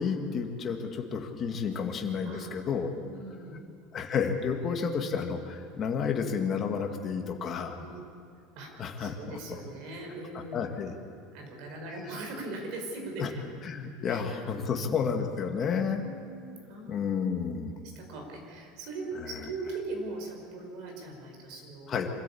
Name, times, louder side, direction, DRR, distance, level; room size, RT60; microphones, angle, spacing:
voice 1, 0.0-2.9 3.9-7.8 8.8-9.4 10.5-11.0 13.2-13.3 13.6-16.0 16.9-17.7 21.9-22.1, left 6 dB, 25° left, 3 dB, 2.0 m, -31 dB
voice 2, 2.2-2.7 3.0-3.6 7.7-8.0 8.6-8.7 9.0-10.7 11.3-13.4 14.0-14.4 14.6-14.8 15.6-17.2 17.8-22.0, right 2 dB, 50° right, 2 dB, 5.5 m, -40 dB
25.5 x 14.0 x 8.6 m, 2.4 s
cardioid pair, 165°, 0 cm